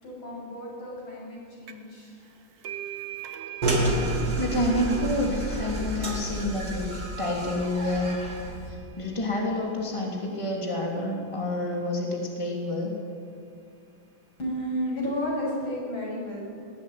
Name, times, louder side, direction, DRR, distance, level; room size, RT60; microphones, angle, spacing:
voice 1, 0.0-2.1 6.3-6.4 14.4-16.5, equal, 80° left, -4 dB, 7.8 m, -32 dB
sound 1, 1.7-2.0 2.3-9.6, right 11 dB, 65° right, 2.0 m, -43 dB
sound 2, 3.6-8.7, right 1 dB, 45° right, 3.5 m, -29 dB
voice 2, 4.4-6.9 7.2-8.1 8.7-12.9, left 1 dB, 15° left, -1 dB, 3.3 m, -28 dB
19.5 x 16.5 x 9.3 m, 2.2 s
omnidirectional pair, 2.2 m